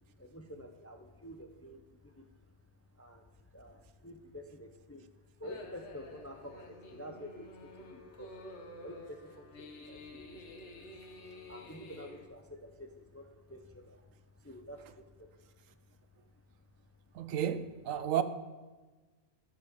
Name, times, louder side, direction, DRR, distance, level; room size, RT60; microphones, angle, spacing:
voice 1, 0.2-2.5 2.9-5.1 5.4-8.5 8.8-11.1 11.4-15.5 16.1-16.2, equal, 15° left, 0.5 m, -50 dB
sound 1, 5.4-12.3, left 2 dB, 60° left, 1.4 m, -50 dB
voice 2, 17.2-18.2, right 9 dB, 85° right, 1.0 m, -32 dB
12.0 x 6.8 x 5.1 m
omnidirectional pair, 1.3 m